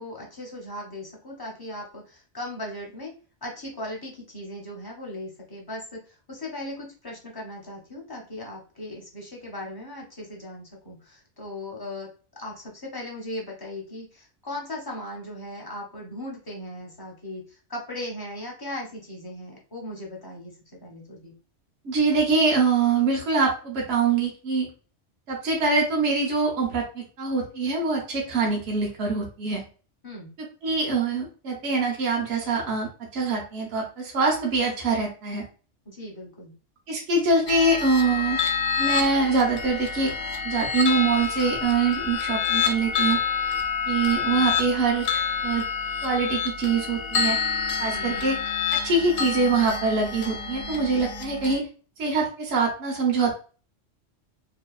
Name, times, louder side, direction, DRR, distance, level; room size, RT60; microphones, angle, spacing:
voice 1, 0.0-3.1 3.4-12.1 12.4-20.5 20.8-21.3 30.0-30.3 35.9-36.5 44.2-44.5 47.9-48.3, left 1 dB, 30° left, -2 dB, 0.4 m, -38 dB
voice 2, 21.8-24.7 25.3-29.6 30.6-35.4 36.9-38.4 38.8-40.1 40.4-43.2 43.9-45.6 46.0-47.4 47.8-48.4 48.7-51.7 52.0-53.3, right 4 dB, 60° right, -1 dB, 1.0 m, -24 dB
sound 1, 37.5-51.6, left 6 dB, 80° left, 0.9 m, -28 dB
2.8 x 2.2 x 2.3 m, 0.36 s
omnidirectional pair, 1.3 m